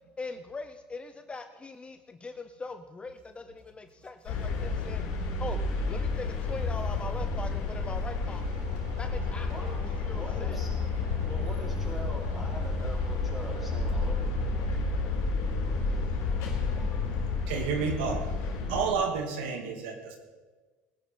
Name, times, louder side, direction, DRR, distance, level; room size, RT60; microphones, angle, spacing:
voice 1, 0.2-5.1 5.4-8.6 9.0-10.6 16.4-17.3, left 3 dB, 20° left, 8 dB, 0.7 m, -41 dB
sound 1, 4.3-18.9, left 3 dB, 75° left, 3.8 m, -30 dB
voice 2, 8.6-9.0 11.2-11.3 17.5-18.3 18.7-20.2, right 5 dB, 90° right, 3 dB, 2.2 m, -31 dB
voice 3, 9.5-9.8 10.1-10.7 11.3-14.2, equal, 5° right, -4 dB, 4.9 m, -42 dB
20.5 x 11.0 x 4.4 m, 1.3 s
supercardioid pair, 100°, 5 cm